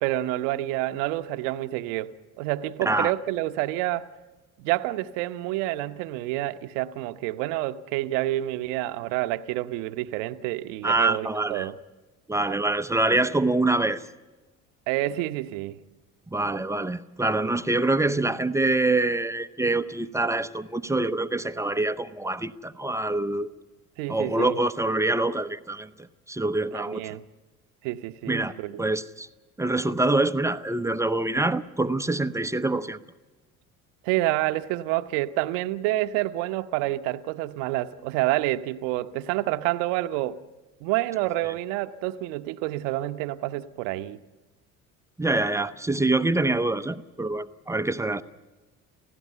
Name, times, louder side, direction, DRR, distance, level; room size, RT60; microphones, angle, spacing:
voice 1, 0.0-2.1 2.4-4.1 4.6-11.8 14.9-15.8 24.0-24.6 26.7-27.2 27.8-28.8 34.0-40.4 40.8-44.2, right 16 dB, 60° right, 0.9 m, -28 dB
voice 2, 2.8-3.1 10.8-11.7 12.3-14.1 16.3-23.5 24.1-25.9 26.3-27.2 28.3-29.3 29.6-33.0 45.2-48.2, right 2 dB, 5° right, 0.6 m, -25 dB
29.5 x 16.0 x 5.6 m
figure-of-eight pair, 55°, 43 cm